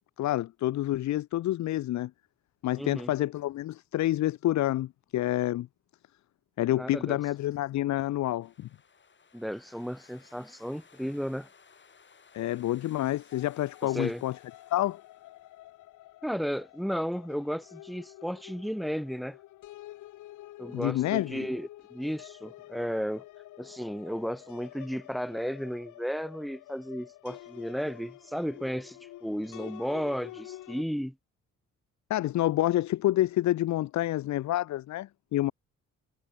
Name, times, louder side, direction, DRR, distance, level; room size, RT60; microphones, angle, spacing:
voice 1, 0.2-2.1 2.6-5.7 6.6-8.7 12.3-14.4 14.7-15.0 20.7-21.5 32.1-35.5, left 14 dB, 70° left, 0.7 m, -28 dB
voice 2, 2.8-3.1 6.8-7.2 9.3-11.5 13.8-14.2 16.2-19.4 20.6-23.2 23.6-31.2, equal, ahead, 0.5 m, -34 dB
sound 1, 8.4-15.7, left 5 dB, 40° left, 7.6 m, -59 dB
sound 2, 13.3-30.8, left 15 dB, 90° left, 2.9 m, -49 dB
cardioid pair, 90°, 30 cm